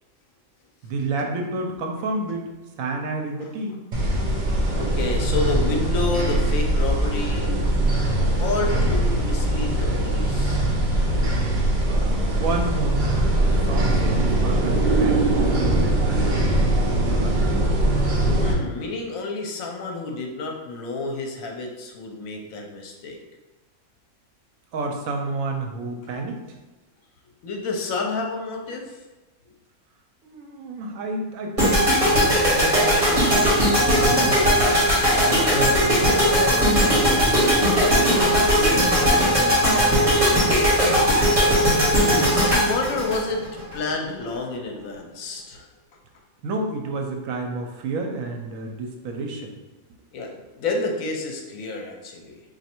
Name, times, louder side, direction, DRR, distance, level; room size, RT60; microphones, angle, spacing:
voice 1, 0.8-2.5 2.8-3.8 11.9-16.3 17.0-17.7 24.7-26.4 30.2-34.8 35.2-37.7 38.1-41.1 46.4-49.5, right 3 dB, 75° right, 3 dB, 1.0 m, -31 dB
sound 1, 3.9-18.5, right 1 dB, 50° right, 0.5 m, -21 dB
voice 2, 4.8-7.5 8.4-10.6 18.4-23.2 27.4-29.0 41.5-43.5 43.7-45.7 50.1-52.4, left 3 dB, 75° left, 1 dB, 1.0 m, -29 dB
sound 2, 31.6-43.8, equal, 25° right, 1.3 m, -19 dB
3.1 x 2.6 x 4.3 m, 1.1 s
omnidirectional pair, 1.5 m